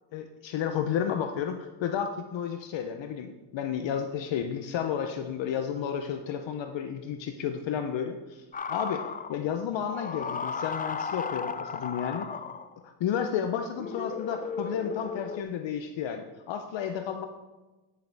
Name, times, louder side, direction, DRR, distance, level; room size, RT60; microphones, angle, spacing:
voice 1, 0.1-9.0 9.3-12.3 12.8-17.3, left 8 dB, 60° left, 7 dB, 0.8 m, -32 dB
sound 1, 8.5-9.4 9.9-12.8 13.7-15.4, left 5 dB, 20° left, 0.4 m, -35 dB
10.5 x 6.7 x 3.5 m, 1.1 s
supercardioid pair, 75°, 50 cm